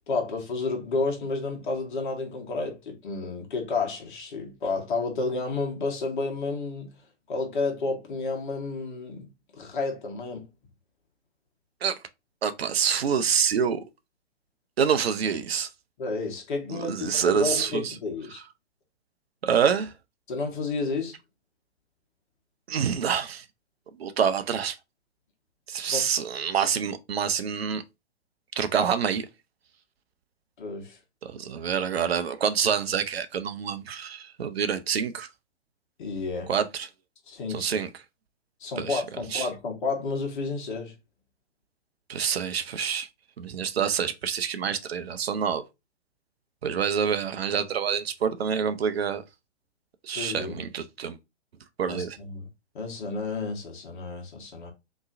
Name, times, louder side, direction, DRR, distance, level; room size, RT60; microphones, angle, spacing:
voice 1, 0.1-6.9 7.3-9.3 9.5-10.5 16.0-18.4 20.3-21.1 25.9-26.1 30.6-31.0 36.0-36.5 37.3-37.8 38.6-40.9 50.1-50.6 51.9-52.5 52.7-54.7, left 3 dB, 45° left, 1.3 m, -31 dB
voice 2, 12.4-13.8 14.8-15.7 16.7-17.9 19.4-19.9 22.7-23.4 24.0-24.8 25.7-27.8 28.6-29.3 31.2-35.3 36.5-36.9 37.5-37.9 38.8-39.0 39.3-39.5 42.1-43.1 43.4-45.6 46.6-49.2 50.0-51.2 51.8-52.2, right 7 dB, 60° right, 0.6 m, -27 dB
3.7 x 3.0 x 2.5 m
figure-of-eight pair, 125°, 35 cm